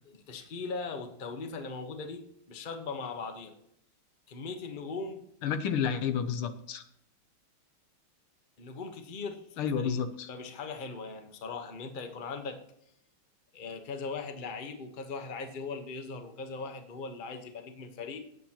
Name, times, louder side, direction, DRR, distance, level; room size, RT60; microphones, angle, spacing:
voice 1, 0.1-3.5 4.3-5.3 8.6-10.0 10.3-12.6 13.5-18.2, left 4 dB, 30° left, 5 dB, 1.0 m, -39 dB
voice 2, 5.4-6.8 9.6-10.3, left 7 dB, 80° left, 9 dB, 1.7 m, -30 dB
17.5 x 8.1 x 3.0 m, 0.74 s
omnidirectional pair, 2.4 m